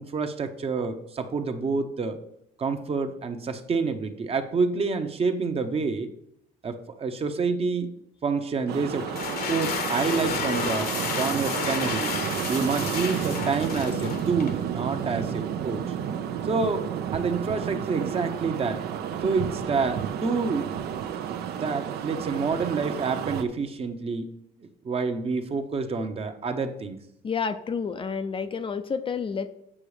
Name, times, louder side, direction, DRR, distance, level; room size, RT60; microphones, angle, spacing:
voice 1, 0.0-2.2 2.6-6.1 6.6-7.9 8.2-9.1 9.5-12.1 12.5-15.9 16.4-18.8 19.2-20.7 21.6-24.3 24.6-27.0, right 4 dB, 35° right, 7 dB, 1.0 m, -28 dB
sound 1, 8.7-23.4, right 9 dB, 70° right, 0.8 m, -31 dB
sound 2, 9.0-14.6, left 7 dB, 65° left, 1.1 m, -32 dB
voice 2, 27.2-29.5, left 5 dB, 30° left, 9 dB, 0.6 m, -29 dB
8.6 x 6.1 x 5.0 m, 0.75 s
cardioid pair, 110°, 17 cm